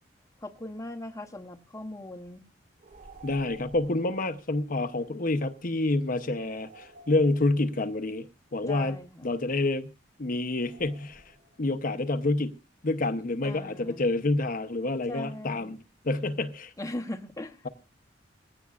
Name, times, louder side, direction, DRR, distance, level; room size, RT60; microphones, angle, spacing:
voice 1, 0.4-2.4 8.6-9.2 13.4-14.0 15.1-15.8 16.8-17.6, left 1 dB, 20° left, 0.9 m, -39 dB
sound 1, 2.8-4.1 6.4-7.8 10.5-11.6, right 3 dB, 50° right, 3.0 m, -51 dB
voice 2, 3.2-9.9 10.2-11.2 11.6-12.5 12.8-15.8 16.0-16.7, left 2 dB, 50° left, 0.8 m, -28 dB
20.5 x 16.5 x 2.4 m
head